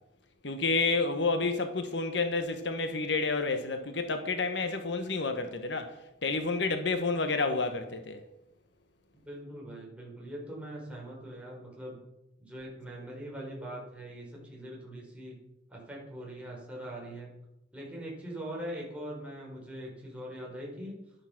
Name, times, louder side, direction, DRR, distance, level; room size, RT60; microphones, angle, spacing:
voice 1, 0.4-5.9 6.2-8.2, left 3 dB, 65° left, 1.3 m, -29 dB
voice 2, 9.1-12.0 12.4-15.4 15.7-17.3 17.7-20.9, right 1 dB, 5° right, 5.1 m, -42 dB
12.0 x 11.0 x 6.0 m
head